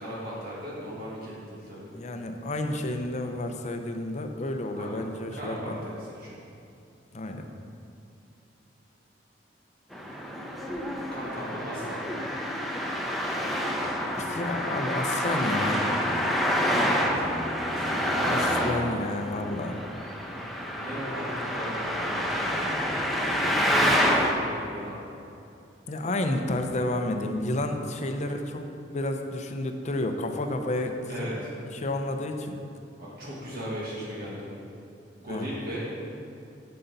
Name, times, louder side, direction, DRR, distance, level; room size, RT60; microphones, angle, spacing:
voice 1, 0.0-1.9 4.7-6.4 11.1-12.2 16.6-18.4 20.7-22.2 23.1-25.0 28.0-28.1 31.1-31.5 33.0-34.5 35.1-36.0, equal, 55° right, -7 dB, 1.6 m, -38 dB
voice 2, 1.9-5.8 7.1-7.4 14.2-15.9 18.0-19.8 25.9-28.6 28.9-31.3 31.7-32.5 35.3-35.5, left 1 dB, 40° left, 5 dB, 0.7 m, -31 dB
Traffic noise roadway noise, 9.9-24.3, equal, ahead, 0.8 m, -28 dB
9.8 x 6.7 x 4.0 m, 2.6 s
head